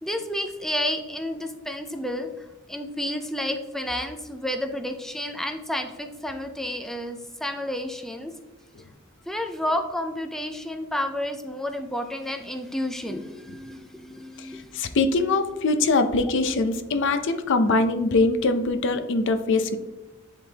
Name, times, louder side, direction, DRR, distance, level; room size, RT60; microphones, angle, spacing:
voice 1, 0.0-2.3 2.7-8.3 9.3-15.0, left 1 dB, ahead, 5 dB, 0.3 m, -31 dB
voice 2, 14.7-19.8, left 3 dB, 60° left, 8 dB, 0.5 m, -22 dB
10.0 x 3.7 x 2.8 m, 1.1 s
head